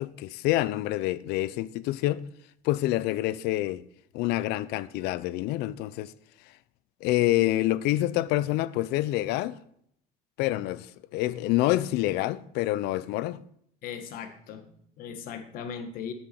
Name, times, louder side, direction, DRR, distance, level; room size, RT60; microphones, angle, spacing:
voice 1, 0.0-2.3 2.6-3.9 4.1-6.1 7.0-9.6 10.4-13.4, left 16 dB, 80° left, 0.6 m, -27 dB
voice 2, 13.8-16.1, left 7 dB, 60° left, 1.5 m, -38 dB
10.0 x 9.5 x 4.4 m
cardioid pair, 180°, 17 cm